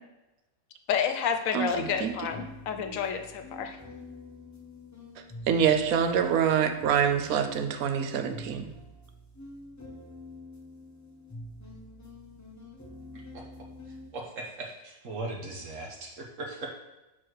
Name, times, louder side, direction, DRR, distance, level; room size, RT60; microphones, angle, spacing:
voice 1, 0.9-3.8, left 7 dB, 70° left, 7 dB, 1.1 m, -30 dB
voice 2, 1.5-2.1 5.5-8.7, right 8 dB, 85° right, 7 dB, 1.1 m, -25 dB
sound 1, 1.7-14.1, left 1 dB, 15° left, 0.6 m, -46 dB
voice 3, 14.1-16.7, right 2 dB, 65° right, -1 dB, 1.3 m, -38 dB
6.2 x 4.2 x 4.6 m, 1.0 s
omnidirectional pair, 1.5 m